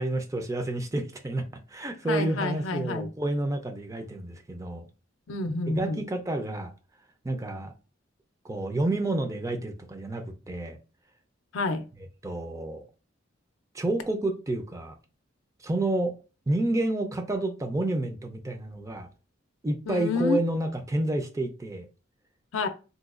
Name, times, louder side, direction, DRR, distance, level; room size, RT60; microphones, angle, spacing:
voice 1, 0.0-4.9 5.7-6.7 7.2-7.7 8.4-10.8 12.2-12.8 13.7-14.9 15.6-16.2 16.5-19.1 19.6-21.9, right 2 dB, 15° right, 0.4 m, -29 dB
voice 2, 2.1-3.1 5.3-6.0 11.5-11.9 19.9-20.4 22.5-22.7, left 3 dB, 85° left, 0.5 m, -28 dB
3.9 x 2.2 x 2.4 m
head